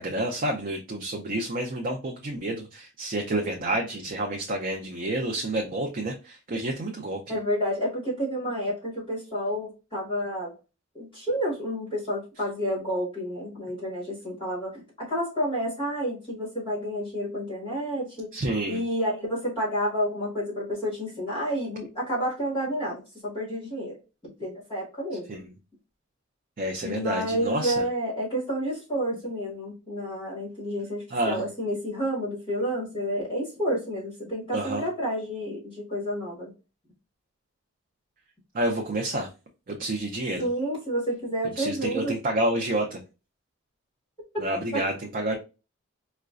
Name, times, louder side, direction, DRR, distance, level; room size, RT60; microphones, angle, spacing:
voice 1, 0.0-7.3 18.3-18.8 25.3-25.5 26.6-27.9 31.1-31.4 34.5-34.8 38.5-39.3 39.7-40.5 41.6-43.0 44.4-45.3, right 1 dB, 40° right, 1 dB, 0.5 m, -29 dB
voice 2, 7.3-10.5 11.0-18.3 18.7-24.0 24.2-25.4 26.8-36.5 40.4-42.1 44.7-44.8, equal, 25° left, -6 dB, 1.6 m, -30 dB
4.7 x 2.2 x 2.4 m, 0.30 s
head